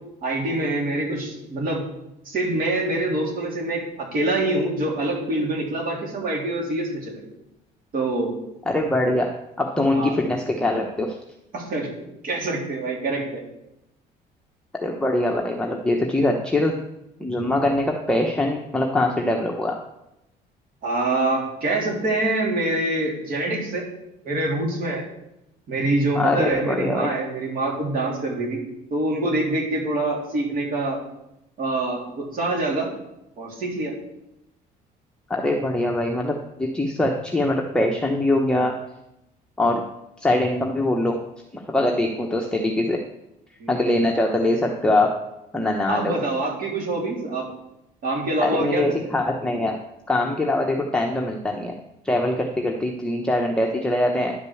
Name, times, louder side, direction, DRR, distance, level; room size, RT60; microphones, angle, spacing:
voice 1, 0.2-1.8 2.3-7.3 7.9-8.4 9.9-10.1 11.5-11.9 12.2-13.4 20.8-23.8 24.2-25.1 25.7-28.6 28.9-31.0 31.6-32.9 33.4-33.9 43.6-43.9 45.9-47.4 48.0-49.0, right 2 dB, 55° right, -2 dB, 3.5 m, -25 dB
voice 2, 8.7-9.3 9.6-11.2 14.8-16.8 17.2-19.7 26.1-27.1 35.3-38.7 39.6-39.8 40.2-41.2 41.5-43.0 43.7-45.1 45.5-46.2 48.4-49.8 50.1-51.7 52.0-54.3, left 1 dB, 5° left, 0 dB, 1.0 m, -23 dB
11.0 x 5.2 x 7.0 m, 0.88 s
cardioid pair, 110°, 17 cm